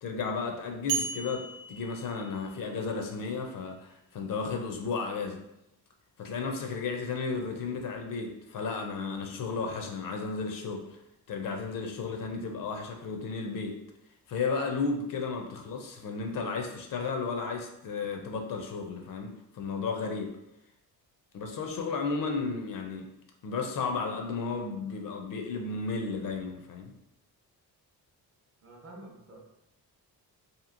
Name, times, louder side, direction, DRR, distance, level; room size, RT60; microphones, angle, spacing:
voice 1, 0.0-5.4 6.2-11.0 11.3-13.8 14.3-20.3 21.3-23.1 23.4-26.9, left 4 dB, 60° left, 3 dB, 0.5 m, -33 dB
sound 1, 0.9-3.0, right 6 dB, 85° right, 0.6 m, -36 dB
voice 2, 28.6-29.4, right 1 dB, 35° right, -2 dB, 0.7 m, -48 dB
2.9 x 2.6 x 2.5 m, 0.84 s
wide cardioid pair, 170°, 38 cm